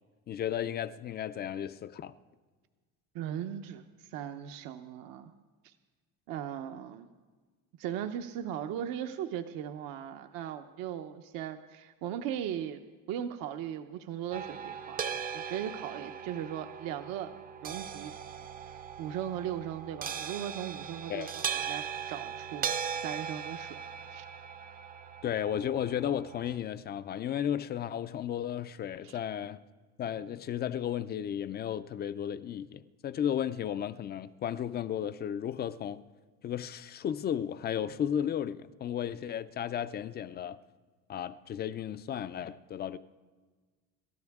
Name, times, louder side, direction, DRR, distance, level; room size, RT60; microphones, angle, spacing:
voice 1, 0.3-2.1 21.1-21.3 25.2-29.6 30.0-36.0 36.4-40.6 41.1-43.0, left 9 dB, 30° left, 0.4 m, -34 dB
voice 2, 3.1-5.3 5.6-5.7 6.3-7.1 7.8-12.8 13.1-17.3 17.6-18.1 18.7-23.8 24.1-24.3 29.0-29.2, right 10 dB, 70° right, 0.9 m, -38 dB
sound 1, 14.3-26.6, right 7 dB, 25° right, 0.5 m, -39 dB
27.0 x 13.0 x 3.6 m
cardioid pair, 155°, 36 cm